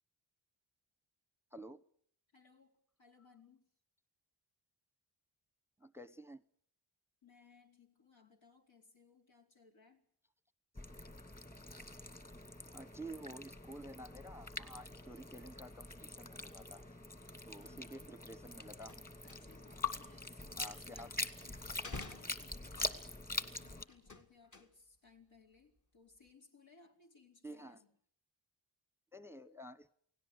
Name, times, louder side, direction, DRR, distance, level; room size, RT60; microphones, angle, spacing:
voice 1, 1.5-1.8 5.8-6.4 12.7-17.0 17.4-19.0 20.6-21.1 27.4-27.8 29.1-29.9, right 1 dB, 5° right, 15 dB, 0.9 m, -51 dB
voice 2, 2.3-3.7 7.2-10.0 17.5-18.1 19.2-27.9, left 5 dB, 70° left, 2 dB, 4.9 m, -64 dB
sound 1, 10.8-23.9, left 3 dB, 20° left, 2.4 m, -44 dB
sound 2, 18.6-19.8 20.1-21.2 21.7-23.1 23.9-25.1 25.3-25.8 26.1-26.3, left 2 dB, 40° left, 2.3 m, -51 dB
29.0 x 18.0 x 8.0 m, 0.66 s
cardioid pair, 80°, 46 cm